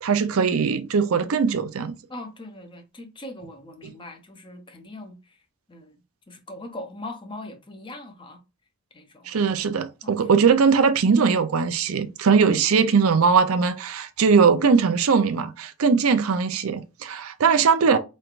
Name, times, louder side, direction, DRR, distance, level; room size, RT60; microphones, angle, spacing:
voice 1, 0.0-2.0 9.3-18.0, right 5 dB, 80° right, 0.5 m, -20 dB
voice 2, 2.1-5.4 5.7-6.0 6.3-8.4 8.9-9.3 10.0-10.1, left 1 dB, 25° left, 0.7 m, -40 dB
4.3 x 3.2 x 2.4 m
head